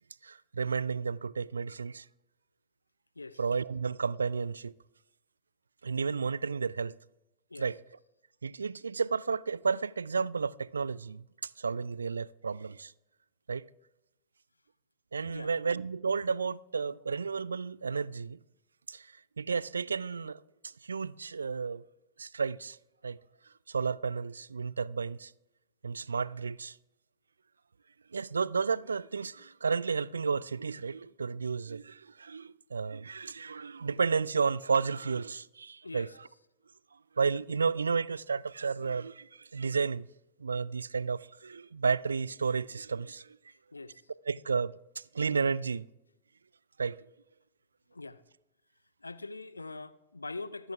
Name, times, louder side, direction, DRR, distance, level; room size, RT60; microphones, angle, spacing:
voice 1, 0.2-2.1 3.4-4.7 5.8-7.0 7.6-7.8 8.4-12.9 13.5-13.6 15.1-18.4 18.9-21.8 22.2-22.8 23.0-23.2 23.5-25.3 25.8-26.8 28.1-36.3 37.2-40.1 40.4-43.4 44.3-45.9 46.8-47.0, right 5 dB, 75° right, 0.3 m, -32 dB
voice 2, 43.7-44.0 47.9-48.2 49.0-50.7, left 3 dB, 80° left, 0.5 m, -42 dB
23.5 x 8.0 x 3.4 m
figure-of-eight pair, 90°, 0 cm